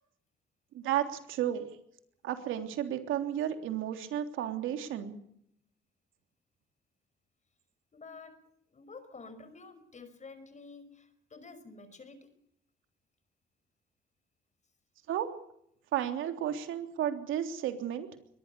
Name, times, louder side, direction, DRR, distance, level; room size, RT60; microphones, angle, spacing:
voice 1, 0.7-1.6 2.2-5.1 15.1-15.3 15.9-18.1, right 10 dB, 85° right, 7 dB, 3.3 m, -33 dB
voice 2, 7.9-8.3 8.7-12.3, left 4 dB, 35° left, 12 dB, 5.3 m, -50 dB
23.0 x 20.0 x 7.0 m, 0.73 s
cardioid pair, 90°, 20 cm